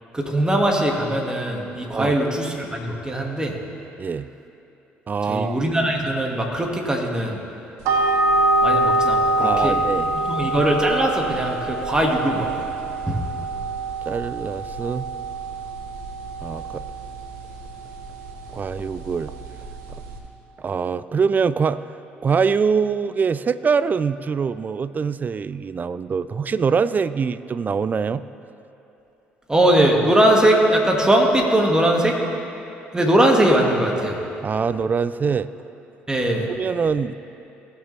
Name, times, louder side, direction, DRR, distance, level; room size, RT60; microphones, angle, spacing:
voice 1, 0.1-3.6 5.3-7.4 8.6-9.8 10.3-12.6 13.1-13.2 29.5-32.2 32.9-34.2 36.1-36.5, right 1 dB, 15° right, 0 dB, 2.0 m, -20 dB
voice 2, 4.0-4.3 5.1-5.6 9.4-10.1 14.1-15.1 16.4-16.8 18.5-19.3 20.6-21.8 22.2-28.2 34.4-35.5 36.6-37.2, right 5 dB, 35° right, 16 dB, 0.4 m, -23 dB
sound 1, 7.8-20.2, right 2 dB, 80° right, 1.1 m, -25 dB
17.5 x 6.9 x 3.4 m, 3.0 s
hypercardioid pair, 60°, 5 cm